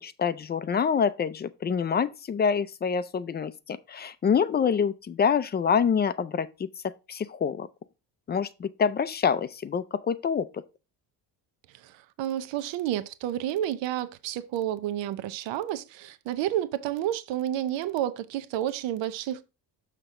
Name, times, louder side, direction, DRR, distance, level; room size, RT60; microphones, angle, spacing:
voice 1, 0.0-6.5 6.8-7.7 8.3-10.5, left 6 dB, 25° left, 0.4 m, -26 dB
voice 2, 11.7-19.4, right 12 dB, 85° right, 0.8 m, -30 dB
6.6 x 6.0 x 3.6 m
cardioid pair, 145°, 43 cm